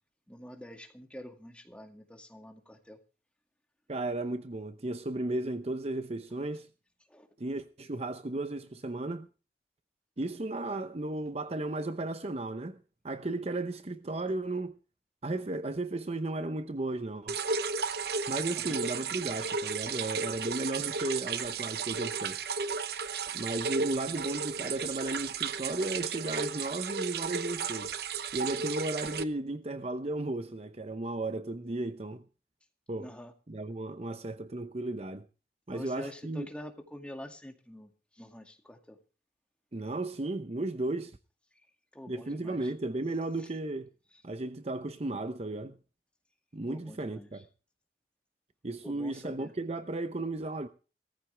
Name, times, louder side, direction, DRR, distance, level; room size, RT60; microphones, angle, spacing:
voice 1, 0.3-3.0 7.1-7.3 18.6-18.8 33.0-33.3 35.7-37.9 38.2-39.0 41.9-42.7 43.4-43.5 46.7-47.3 48.8-49.5, equal, 5° left, 2.1 m, -46 dB
voice 2, 3.9-6.7 7.4-9.3 10.2-12.8 13.0-14.8 15.2-17.4 18.3-22.4 23.3-27.9 28.3-32.2 32.9-33.1 33.5-35.2 35.7-36.5 39.7-41.2 42.1-43.9 44.2-45.8 46.5-47.5 48.6-50.7, right 2 dB, 35° right, 0.7 m, -34 dB
sound 1, 17.3-29.2, right 5 dB, 65° right, 0.9 m, -34 dB
19.0 x 14.5 x 3.4 m
head